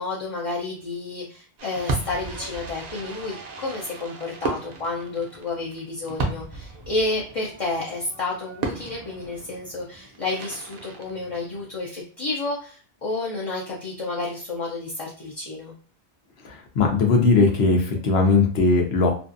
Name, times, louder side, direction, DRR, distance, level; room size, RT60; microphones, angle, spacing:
voice 1, 0.0-15.7, left 3 dB, 40° left, -5 dB, 0.6 m, -30 dB
Fireworks, 1.6-11.8, right 3 dB, 50° right, 0.6 m, -35 dB
voice 2, 16.4-19.1, left 4 dB, 75° left, 2 dB, 0.9 m, -19 dB
2.5 x 2.3 x 2.5 m, 0.41 s
omnidirectional pair, 1.1 m